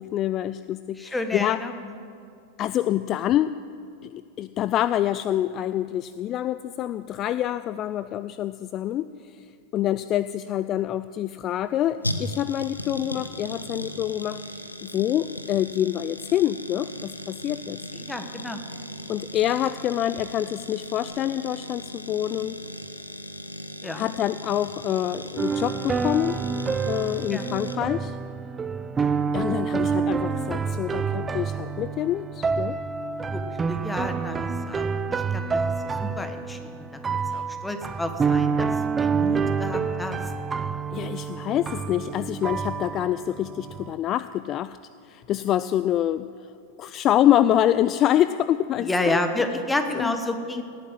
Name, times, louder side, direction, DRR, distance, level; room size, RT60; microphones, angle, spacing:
voice 1, 0.0-1.6 2.6-3.5 4.0-9.5 9.7-17.8 19.1-22.6 23.9-26.4 26.9-28.2 29.3-32.8 37.3-37.4 40.9-44.8 45.0-46.3 46.8-49.2 50.0-50.1, left 12 dB, 35° left, 14 dB, 0.3 m, -26 dB
voice 2, 1.0-1.9 17.9-18.6 23.8-24.1 27.3-27.5 33.3-37.0 37.3-38.7 39.0-40.2 48.8-50.6, left 2 dB, 10° left, 7 dB, 1.3 m, -30 dB
sound 1, 11.2-27.8, equal, 85° left, 0.9 m, -37 dB
sound 2, 25.4-43.9, right 5 dB, 15° right, 0.5 m, -28 dB
18.0 x 9.3 x 7.5 m, 2.5 s
figure-of-eight pair, 90°, 0 cm